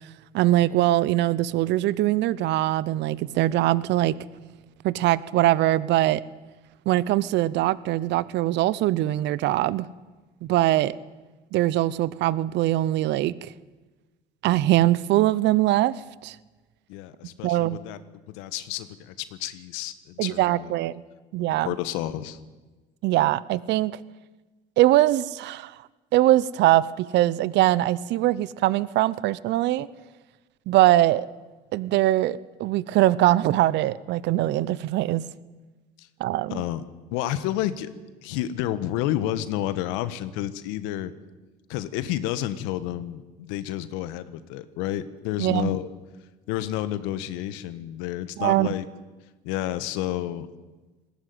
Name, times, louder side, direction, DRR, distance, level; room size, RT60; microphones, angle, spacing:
voice 1, 0.3-4.1 4.8-6.2 6.9-9.9 10.4-10.9 11.5-13.5 14.4-15.9 16.2-16.3 17.4-17.8 20.2-21.0 21.3-21.7 23.0-24.0 24.8-25.7 26.1-29.9 30.7-31.3 31.7-35.2 36.2-36.6 45.4-45.7 48.4-48.7, right 15 dB, 65° right, 20 dB, 0.8 m, -22 dB
voice 2, 16.9-18.0 18.3-20.7 21.4-22.4 36.0-36.1 36.5-36.8 37.1-37.9 38.2-41.1 41.7-45.9 46.5-48.9 49.4-50.5, left 13 dB, 90° left, 14 dB, 1.5 m, -30 dB
19.5 x 18.0 x 9.5 m, 1.2 s
cardioid pair, 120°, 20 cm